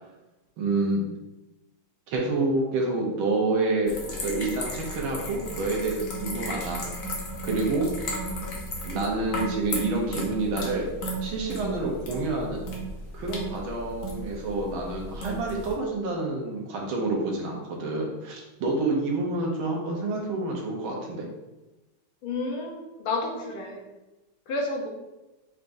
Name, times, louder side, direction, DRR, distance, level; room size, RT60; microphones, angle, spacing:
voice 1, 0.6-1.0 2.1-6.9 7.4-7.9 8.8-10.9 11.2-12.6 13.1-21.3, right 2 dB, 75° right, -1 dB, 1.7 m, -28 dB
sound 1, 3.9-15.7, equal, 55° left, 1.0 m, -35 dB
voice 2, 22.2-23.8 24.5-24.9, left 2 dB, 80° left, 1 dB, 1.6 m, -30 dB
6.1 x 3.4 x 2.6 m, 1.0 s
omnidirectional pair, 2.3 m